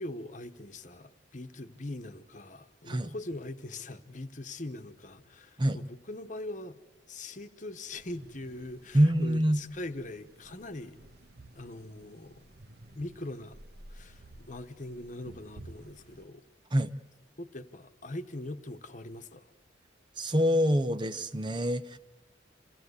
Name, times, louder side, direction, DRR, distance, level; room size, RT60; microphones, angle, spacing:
voice 1, 0.0-6.8 7.1-11.0 11.5-12.4 12.9-13.6 13.9-16.4 17.4-19.5, left 1 dB, 40° left, 1.1 m, -42 dB
sound 1, 7.9-16.3, right 1 dB, 55° right, 1.3 m, -53 dB
voice 2, 8.9-9.6 16.7-16.9 20.2-22.0, equal, 25° right, 0.6 m, -25 dB
28.0 x 17.0 x 8.1 m
head